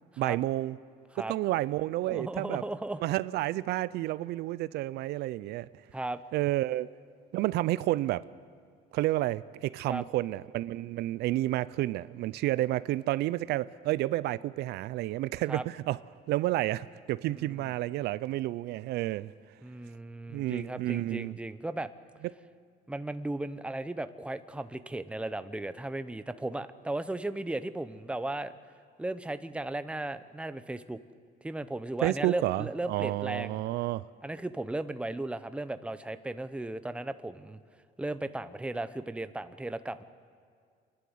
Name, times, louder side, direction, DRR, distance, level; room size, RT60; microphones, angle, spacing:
voice 1, 0.2-0.8 1.3-2.6 3.0-5.7 6.3-6.9 7.3-8.2 8.9-16.0 16.3-19.3 20.3-21.4 32.0-34.0, right 16 dB, 80° right, 0.4 m, -30 dB
voice 2, 2.1-3.0 5.9-6.2 9.9-10.0 15.5-15.7 17.3-17.7 19.6-21.9 22.9-28.5 29.0-31.0 31.4-33.6 34.2-37.6 38.0-40.0, right 2 dB, 5° right, 0.7 m, -36 dB
29.0 x 11.5 x 8.0 m
cardioid pair, 110°, 17 cm